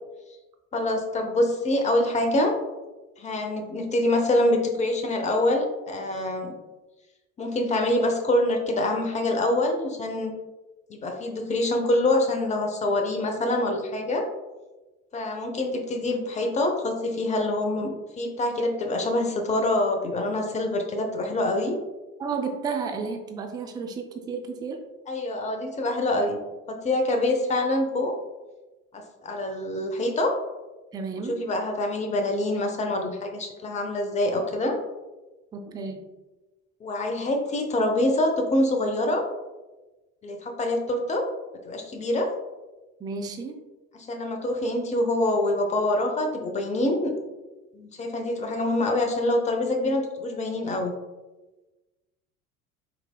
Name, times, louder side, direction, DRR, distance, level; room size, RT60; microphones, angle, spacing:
voice 1, 0.7-2.6 3.2-6.5 7.4-10.3 10.9-14.3 15.1-21.7 25.1-26.4 26.7-28.1 28.9-30.3 31.3-34.8 36.8-39.2 40.2-41.2 41.6-42.3 43.9-47.1 47.7-50.9, left 1 dB, 15° left, 4 dB, 0.7 m, -25 dB
voice 2, 22.2-24.8 30.9-31.4 35.5-36.0 43.0-43.6, right 5 dB, 10° right, 4 dB, 0.4 m, -32 dB
5.9 x 4.0 x 2.3 m, 1.1 s
figure-of-eight pair, 65°, 41 cm